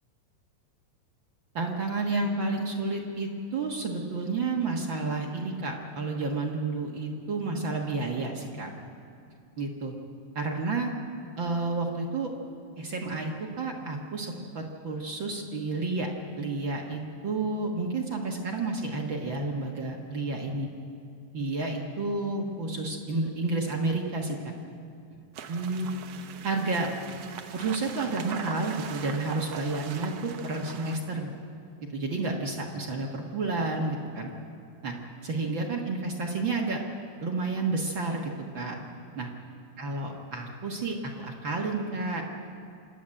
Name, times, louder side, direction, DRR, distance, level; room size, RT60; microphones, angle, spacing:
voice 1, 1.5-8.7 9.6-9.9 10.3-10.9 11.4-12.3 12.8-16.1 16.4-20.7 21.3-24.5 25.5-25.9 26.4-26.9 27.5-31.3 31.9-34.3 34.8-34.9 35.2-36.8 37.2-38.8 39.1-39.3 39.8-42.2, right 3 dB, 50° right, 0 dB, 1.5 m, -30 dB
sound 1, 25.3-31.0, right 7 dB, 70° right, 1.5 m, -41 dB
27.0 x 11.5 x 8.8 m, 2.4 s
omnidirectional pair, 4.0 m